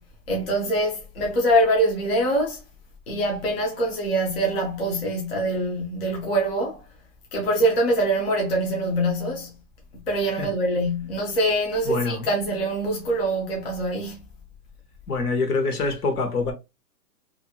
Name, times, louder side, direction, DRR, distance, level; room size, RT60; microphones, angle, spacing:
voice 1, 0.3-2.6 3.1-6.8 7.3-9.5 10.1-14.2, right 1 dB, 40° left, 0.5 m, -24 dB
voice 2, 11.8-12.3 15.1-16.5, left 3 dB, 65° left, 1.0 m, -25 dB
2.6 x 2.4 x 2.6 m
hypercardioid pair, 170°, 50 cm